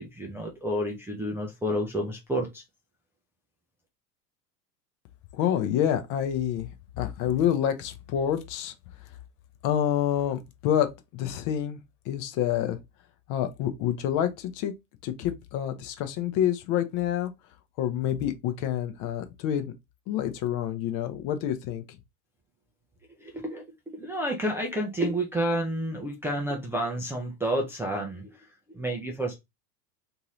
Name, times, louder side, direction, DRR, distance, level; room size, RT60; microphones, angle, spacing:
voice 1, 0.0-2.6 23.2-23.6 23.9-29.3, right 1 dB, 5° right, 0.4 m, -30 dB
voice 2, 5.3-6.7 7.0-8.7 9.6-11.8 12.1-12.8 13.3-14.7 15.0-17.3 17.8-19.6 20.1-21.8, left 10 dB, 40° left, 0.6 m, -27 dB
2.7 x 2.6 x 3.0 m
hypercardioid pair, 85°, 49 cm